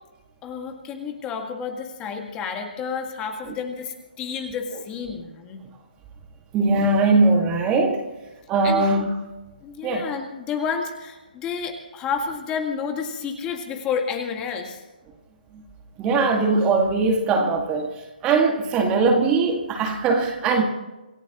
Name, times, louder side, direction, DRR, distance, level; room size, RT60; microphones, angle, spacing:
voice 1, 0.4-5.6 8.6-8.8 9.6-14.8, left 6 dB, 15° left, 1.9 m, -30 dB
voice 2, 6.5-8.1 8.5-9.1 9.8-10.1 16.0-20.6, right 3 dB, 15° right, 2.0 m, -20 dB
27.0 x 16.0 x 3.0 m
figure-of-eight pair, 150°, 5 cm